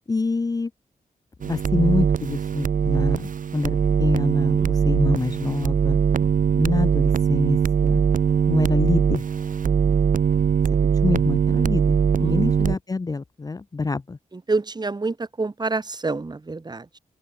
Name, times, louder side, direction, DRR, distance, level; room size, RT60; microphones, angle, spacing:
voice 1, 0.1-0.7 1.4-6.0 6.5-8.0 8.5-9.2 10.7-10.8 11.0-14.2, left 3 dB, 25° left, 0.6 m, -26 dB
sound 1, 1.4-12.8, right 7 dB, 70° right, 1.5 m, -21 dB
voice 2, 6.2-6.6 12.2-12.4 14.3-17.0, right 3 dB, 30° right, 1.6 m, -28 dB
open air
cardioid pair, 80°, 14 cm